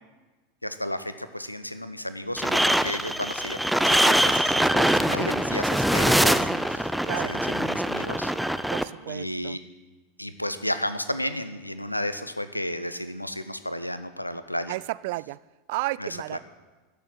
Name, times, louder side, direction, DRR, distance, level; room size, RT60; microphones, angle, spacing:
voice 1, 0.6-3.6 3.8-6.9 7.2-8.3 9.1-9.6 10.2-14.8 16.0-16.4, left 1 dB, 90° left, 0.9 m, -33 dB
sound 1, 2.4-8.8, right 1 dB, ahead, 0.6 m, -23 dB
voice 2, 7.0-7.4 8.7-9.6 14.7-15.4 15.7-16.4, right 20 dB, 50° right, 0.3 m, -32 dB
14.0 x 6.9 x 9.7 m
figure-of-eight pair, 85°, 0 cm